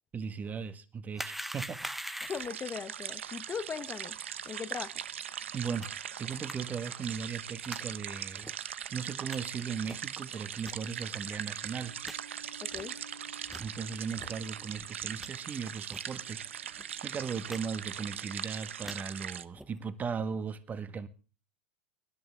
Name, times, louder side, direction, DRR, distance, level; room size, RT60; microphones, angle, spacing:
voice 1, 0.1-1.8 5.5-5.9 6.2-8.5 8.9-12.0 13.6-21.1, right 6 dB, 25° right, 1.8 m, -37 dB
sound 1, 1.1-2.6 5.8-5.9 6.5-6.6 7.6-7.8 8.4-8.5 9.3-9.4 9.9-10.1 10.6-10.7 11.3-11.4 11.6-11.7 12.0-12.2 12.7-12.8 13.4-13.7 14.2-14.3 14.8-15.3 15.9-16.1 16.4-16.5 16.8-17.0 17.5-17.6 17.8-18.2 18.6-19.0 19.5-19.8, right 1 dB, 5° right, 0.8 m, -42 dB
voice 2, 2.2-4.2 4.4-5.0 12.6-13.0, left 6 dB, 25° left, 1.0 m, -39 dB
sound 2, 2.3-19.4, right 9 dB, 80° right, 0.8 m, -40 dB
sound 3, 11.5-17.9, right 2 dB, 55° right, 5.8 m, -56 dB
24.0 x 11.0 x 3.5 m
hypercardioid pair, 95°, 7 cm